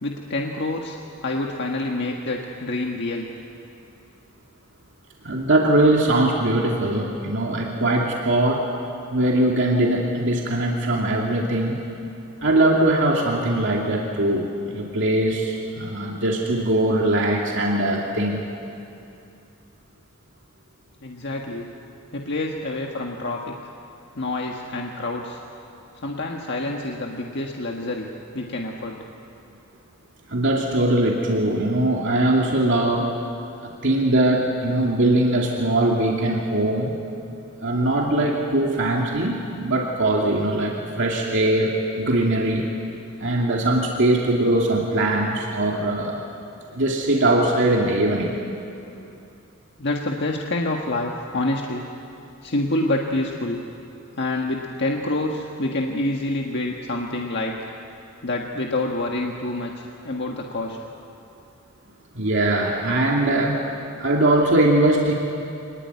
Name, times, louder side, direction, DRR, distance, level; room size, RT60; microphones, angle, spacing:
voice 1, 0.0-3.3 21.0-21.7 22.1-23.6 24.1-25.4 26.0-28.1 28.3-29.0 48.8-49.2 49.8-51.8 52.4-53.6 54.2-57.5 58.2-60.8, left 2 dB, 55° left, 0 dB, 1.6 m, -27 dB
voice 2, 5.2-8.6 9.1-11.8 12.4-18.4 30.3-33.1 33.6-37.0 37.6-42.7 43.2-46.2 46.7-48.3 62.1-63.6 64.0-65.1, right 1 dB, 60° right, -2 dB, 2.5 m, -21 dB
25.5 x 20.0 x 9.6 m, 2.7 s
head